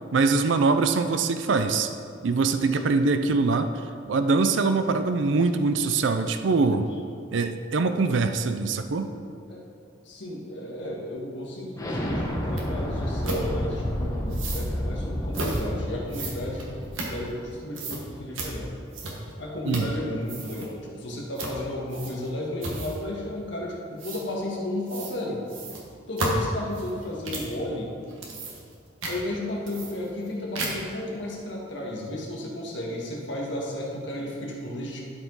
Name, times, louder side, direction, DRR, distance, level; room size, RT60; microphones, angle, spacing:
voice 1, 0.1-1.9 2.2-3.7 4.1-6.9 7.3-9.1 19.7-19.9, right 4 dB, 70° right, 8 dB, 0.4 m, -23 dB
voice 2, 10.0-16.7 17.0-18.7 19.4-25.4 26.1-27.9 29.1-35.0, left 1 dB, 65° left, -3 dB, 1.6 m, -33 dB
Explosion, 11.8-17.3, equal, 15° left, 0.9 m, -30 dB
sound 1, 12.6-12.7 13.2-13.4 14.3-14.7 15.3-15.6 16.1-17.5 17.7-18.0 18.3-18.5 18.9-19.3 19.7-20.0 20.2-20.7 21.4-21.6 21.9-22.3 22.6-23.0 24.0-24.2 24.9-25.2 25.5-27.5 28.0-28.7 29.0-29.2 29.7-30.3 30.5-30.9, right 2 dB, 85° right, 1.5 m, -33 dB
12.5 x 4.9 x 4.0 m, 2.4 s
head